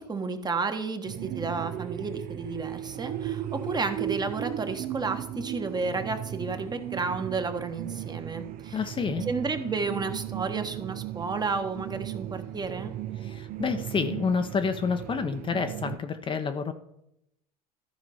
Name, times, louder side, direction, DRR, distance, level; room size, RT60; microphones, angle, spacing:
voice 1, 0.0-8.8 9.3-13.0, right 4 dB, 20° right, 7 dB, 1.2 m, -32 dB
sound 1, 1.1-16.0, right 12 dB, 45° right, 0.6 m, -36 dB
voice 2, 8.7-9.3 13.2-16.7, left 5 dB, 25° left, 8 dB, 0.8 m, -29 dB
14.0 x 5.1 x 5.5 m, 0.81 s
hypercardioid pair, 80°, 20 cm